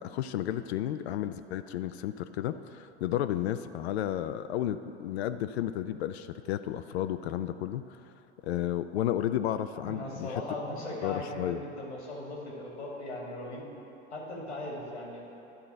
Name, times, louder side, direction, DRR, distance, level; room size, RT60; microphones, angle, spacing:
voice 1, 0.0-8.0 8.4-10.3 11.0-11.6, left 11 dB, 70° left, 10 dB, 0.5 m, -32 dB
voice 2, 9.7-13.7 14.1-15.2, left 1 dB, 90° left, -3 dB, 2.4 m, -38 dB
11.0 x 3.9 x 7.6 m, 2.9 s
hypercardioid pair, 85°, 33 cm